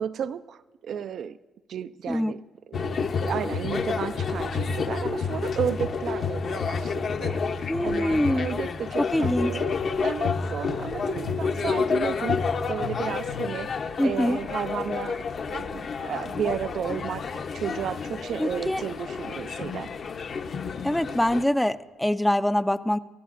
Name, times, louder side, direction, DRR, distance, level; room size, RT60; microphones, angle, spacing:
voice 1, 0.0-1.4 1.7-2.4 2.7-19.9, right 8 dB, 65° right, 13 dB, 0.3 m, -33 dB
sound 1, 2.7-21.4, left 5 dB, 55° left, 0.7 m, -29 dB
voice 2, 7.7-8.5 9.0-9.5 14.0-14.4 18.4-18.8 20.8-23.0, left 1 dB, 5° left, 10 dB, 0.4 m, -24 dB
29.0 x 14.0 x 2.5 m, 1.2 s
cardioid pair, 90°, 0 cm